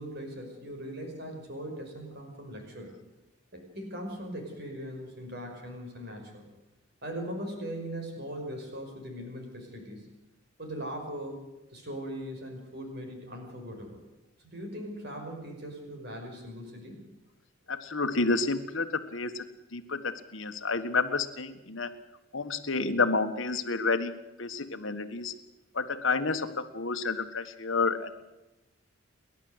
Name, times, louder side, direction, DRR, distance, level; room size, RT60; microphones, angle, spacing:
voice 1, 0.0-2.9 3.5-6.5 7.0-10.1 10.6-14.0 14.4-17.0, equal, 50° right, 3 dB, 5.5 m, -40 dB
voice 2, 17.7-19.5 19.7-22.0 22.3-24.1 24.4-25.3 25.7-28.1, left 3 dB, 65° left, 7 dB, 1.5 m, -30 dB
30.0 x 11.5 x 8.0 m, 0.99 s
head